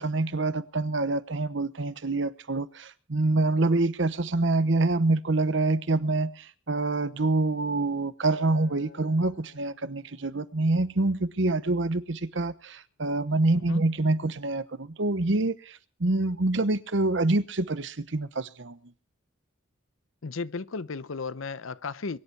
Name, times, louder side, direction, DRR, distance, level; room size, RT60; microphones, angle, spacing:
voice 1, 0.0-18.8, right 2 dB, 60° right, 0.9 m, -26 dB
Acoustic guitar, 8.2-12.6 13.2-13.4, left 7 dB, 55° left, 4.1 m, -56 dB
voice 2, 20.2-22.2, left 4 dB, 80° left, 0.7 m, -34 dB
23.0 x 11.0 x 4.6 m
head